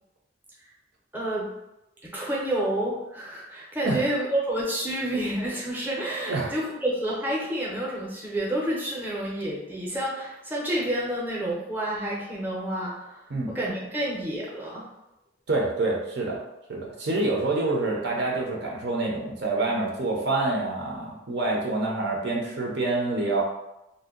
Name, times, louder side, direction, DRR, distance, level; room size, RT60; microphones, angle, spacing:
voice 1, 1.1-1.5 2.0-14.9, right 1 dB, 10° right, -6 dB, 0.6 m, -29 dB
voice 2, 15.5-16.4 16.7-23.4, right 2 dB, 55° right, -2 dB, 0.6 m, -27 dB
2.6 x 2.1 x 3.6 m, 0.90 s
head